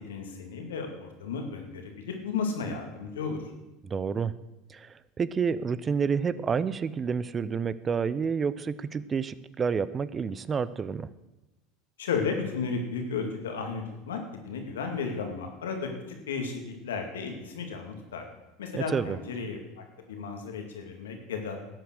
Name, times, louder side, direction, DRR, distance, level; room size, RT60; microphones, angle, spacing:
voice 1, 0.0-3.4 12.0-15.9 16.3-18.2 18.6-21.6, left 5 dB, 85° left, 4 dB, 2.2 m, -34 dB
voice 2, 3.8-4.3 4.7-11.1 18.7-19.2, right 6 dB, 30° right, 17 dB, 0.6 m, -29 dB
13.0 x 8.2 x 6.4 m, 1.0 s
hypercardioid pair, 85°, 0 cm